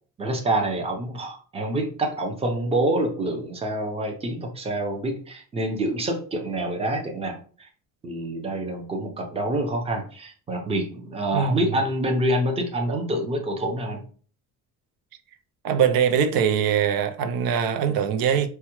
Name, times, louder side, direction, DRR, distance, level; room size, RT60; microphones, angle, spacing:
voice 1, 0.2-7.7 8.0-14.0, right 1 dB, 20° right, 0.6 m, -27 dB
voice 2, 15.6-18.5, right 8 dB, 90° right, 0.5 m, -22 dB
4.6 x 2.2 x 2.9 m
cardioid pair, 155°, 34 cm